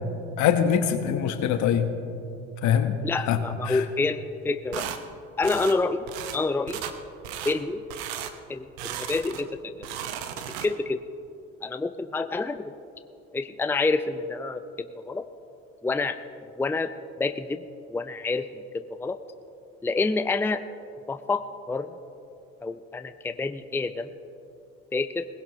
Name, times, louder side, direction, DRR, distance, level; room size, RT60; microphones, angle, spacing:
voice 1, 0.4-1.9 2.6-2.9 3.3-3.4 3.7-3.8, left 8 dB, 65° left, 8 dB, 1.3 m, -23 dB
voice 2, 3.0-4.9 5.4-6.1 6.3-6.8 7.4-7.8 8.5-9.7 10.4-11.0 11.6-12.7 13.3-14.6 15.1-15.3 15.8-16.2 16.6-16.9 17.2-17.6 17.9-18.6 19.0-19.2 19.8-20.6 21.1-21.9 22.6-24.1 24.9-25.3, left 3 dB, 5° left, 10 dB, 0.5 m, -28 dB
sound 1, 4.7-5.0 5.4-5.8 6.1-6.4 6.7-7.0 7.2-7.6 7.9-8.3 8.8-9.5 9.8-10.9, right 10 dB, 85° right, 0.9 m, -35 dB
19.5 x 16.5 x 3.1 m, 2.7 s
hypercardioid pair, 70°, 31 cm